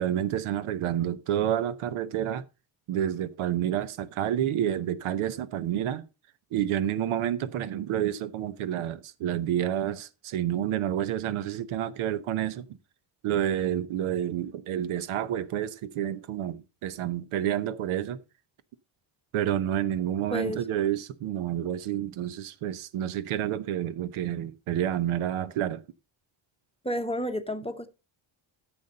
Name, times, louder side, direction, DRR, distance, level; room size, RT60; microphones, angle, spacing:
voice 1, 0.0-2.4 2.9-6.0 6.5-12.6 13.2-18.2 19.3-25.8, right 11 dB, 90° right, 0.9 m, -29 dB
voice 2, 20.3-20.7 26.8-27.9, equal, 10° left, 0.8 m, -31 dB
10.5 x 7.2 x 4.0 m
cardioid pair, 90°, 48 cm